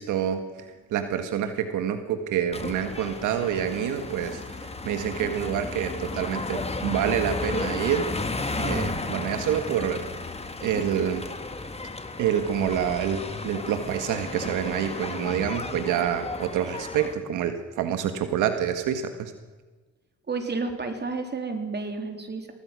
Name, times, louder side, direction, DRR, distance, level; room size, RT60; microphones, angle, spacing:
voice 1, 0.0-8.1 8.6-10.0 10.6-11.3 12.2-19.3, right 9 dB, 85° right, 8 dB, 1.8 m, -27 dB
sound 1, 2.5-17.1, left 3 dB, 20° left, 2.1 m, -33 dB
voice 2, 20.3-22.5, right 4 dB, 35° right, 5 dB, 4.0 m, -31 dB
24.0 x 18.5 x 6.3 m, 1.3 s
cardioid pair, 90°, 30 cm